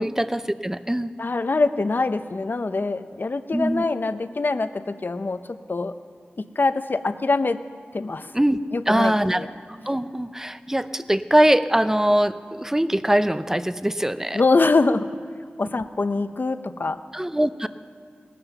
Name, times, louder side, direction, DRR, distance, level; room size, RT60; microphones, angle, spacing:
voice 1, 0.0-1.1 3.5-3.8 8.3-8.6 8.9-9.5 9.9-14.4 17.1-17.7, right 1 dB, 10° right, 13 dB, 0.5 m, -22 dB
voice 2, 1.2-5.9 6.6-7.6 7.9-8.3 8.7-9.5 14.3-15.1 15.6-17.0, left 3 dB, 50° left, 11 dB, 0.7 m, -24 dB
18.5 x 11.0 x 7.0 m, 2.2 s
wide cardioid pair, 70°, 4 cm